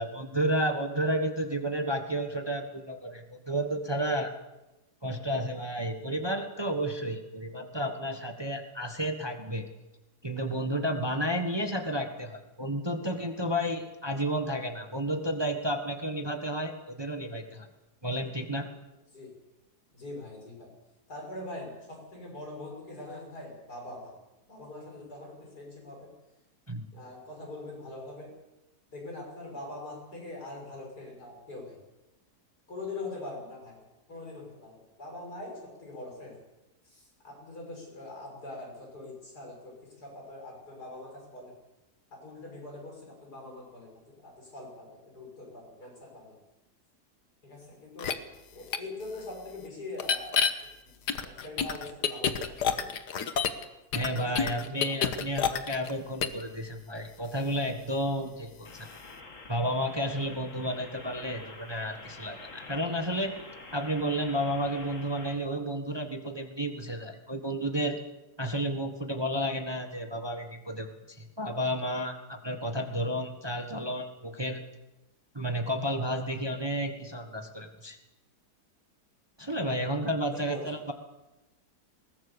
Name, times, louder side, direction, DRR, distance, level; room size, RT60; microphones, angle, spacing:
voice 1, 0.0-4.3 5.0-9.7 10.2-17.7 18.0-18.7 26.7-26.9 53.9-58.9 59.5-63.3 63.7-68.0 68.4-74.6 75.3-78.0 79.4-80.9, equal, 15° right, 5 dB, 1.4 m, -31 dB
voice 2, 19.9-20.7 21.1-24.1 24.5-26.1 26.9-28.3 28.9-31.8 32.7-33.8 34.1-36.4 36.8-41.6 42.1-46.4 47.4-48.2 48.5-50.4 50.8-52.9 53.9-55.0 80.3-80.7, left 2 dB, 75° left, 0 dB, 7.0 m, -43 dB
sound 1, 48.0-48.1 48.7-48.8 50.0-50.5 51.1-53.6 53.9-55.9 56.2-56.4, left 7 dB, 90° left, 1.8 m, -28 dB
sound 2, 58.7-65.3, left 3 dB, 50° left, 2.5 m, -47 dB
21.0 x 19.0 x 7.0 m, 1.0 s
omnidirectional pair, 1.7 m